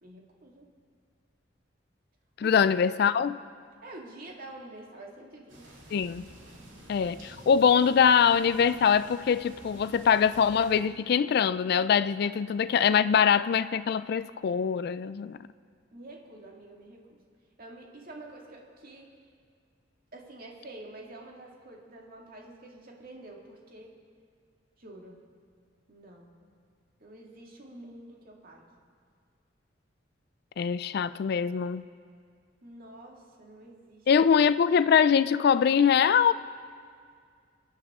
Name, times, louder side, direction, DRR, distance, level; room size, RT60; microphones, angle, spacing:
voice 1, 0.0-0.7 2.4-2.6 3.8-5.8 12.2-12.3 15.9-17.2 17.6-19.1 20.1-23.9 24.8-25.2 25.9-26.3 27.0-28.7 32.6-34.1, right 2 dB, 50° right, 2.1 m, -47 dB
voice 2, 2.4-3.4 5.9-6.3 6.9-15.4 30.6-31.8 34.1-36.3, left 7 dB, 55° left, 0.3 m, -23 dB
sound 1, 5.5-10.8, right 1 dB, 80° right, 3.0 m, -50 dB
27.5 x 10.5 x 3.7 m
head